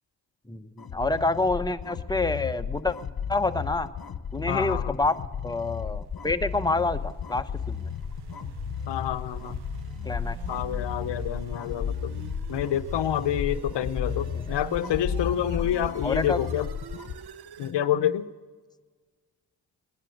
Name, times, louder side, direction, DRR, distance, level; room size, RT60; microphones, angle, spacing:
voice 1, 0.5-3.0 3.3-3.9 4.3-5.1 5.4-7.9 10.0-10.4 16.0-16.4, left 2 dB, 10° left, 8 dB, 1.0 m, -27 dB
sound 1, 0.8-17.2, left 7 dB, 55° left, 1.0 m, -34 dB
voice 2, 4.5-5.0 8.9-9.6 10.5-12.1 12.5-16.7 17.6-18.3, left 10 dB, 80° left, 14 dB, 0.7 m, -28 dB
sound 2, 5.6-17.8, right 9 dB, 70° right, 0.7 m, -44 dB
20.0 x 11.0 x 6.3 m, 1.5 s
cardioid pair, 45°, 41 cm